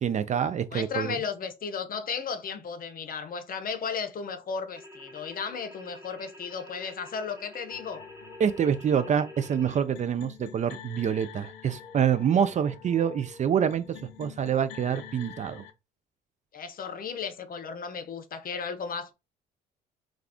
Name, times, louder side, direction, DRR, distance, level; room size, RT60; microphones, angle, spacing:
voice 1, 0.0-1.2 8.4-13.8 14.2-15.6, right 8 dB, 35° right, 0.4 m, -26 dB
voice 2, 0.7-8.0 16.5-19.1, left 6 dB, 45° left, 0.7 m, -35 dB
sound 1, 4.8-9.8, equal, 15° right, 1.0 m, -48 dB
sound 2, 7.7-15.7, left 8 dB, 85° left, 0.5 m, -47 dB
2.4 x 2.4 x 3.4 m
supercardioid pair, 65°, 21 cm